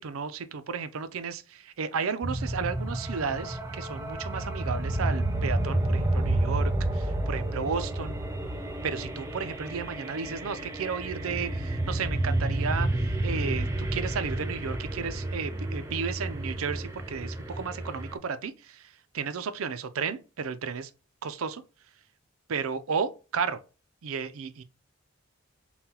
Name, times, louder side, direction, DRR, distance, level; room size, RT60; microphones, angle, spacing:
voice 1, 0.0-8.2 8.8-18.8 19.1-20.9 21.2-21.6 22.5-23.6 24.0-24.6, right 5 dB, 85° right, 0.5 m, -33 dB
sound 1, 2.2-18.2, right 1 dB, 15° right, 0.6 m, -30 dB
5.6 x 2.2 x 2.8 m
head